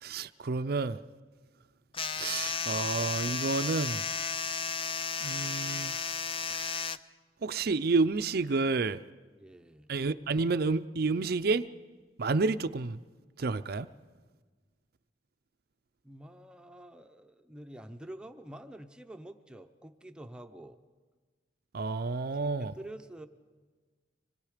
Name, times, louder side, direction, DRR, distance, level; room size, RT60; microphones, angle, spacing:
voice 1, 0.0-1.0 2.2-4.0 5.2-5.9 6.5-6.8 7.4-9.0 9.9-11.7 12.2-13.0 13.4-13.9 21.7-22.8, right 3 dB, 60° right, 0.6 m, -30 dB
sound 1, 1.9-7.0, left 5 dB, 30° left, 0.6 m, -33 dB
voice 2, 9.4-9.9 16.0-20.8 22.4-23.3, right 1 dB, 5° right, 0.7 m, -47 dB
25.5 x 21.0 x 5.0 m
head